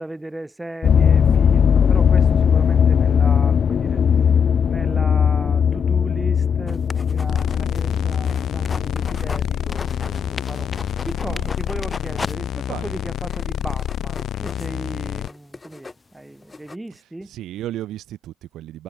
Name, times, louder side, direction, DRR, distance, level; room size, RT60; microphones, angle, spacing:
voice 1, 0.0-17.3, right 1 dB, 10° right, 1.8 m, -36 dB
sound 1, 0.8-13.1 13.7-14.1 14.6-14.7 15.1-15.2, left 7 dB, 50° left, 0.3 m, -19 dB
sound 2, 6.7-9.4 9.7-12.3 12.7-12.8 13.2-16.8, left 3 dB, 25° left, 1.7 m, -37 dB
sound 3, 7.3-15.3, left 11 dB, 70° left, 0.9 m, -28 dB
voice 2, 11.2-11.5 12.7-13.0 16.9-18.8, right 13 dB, 85° right, 4.4 m, -35 dB
cardioid pair, 90°, 0 cm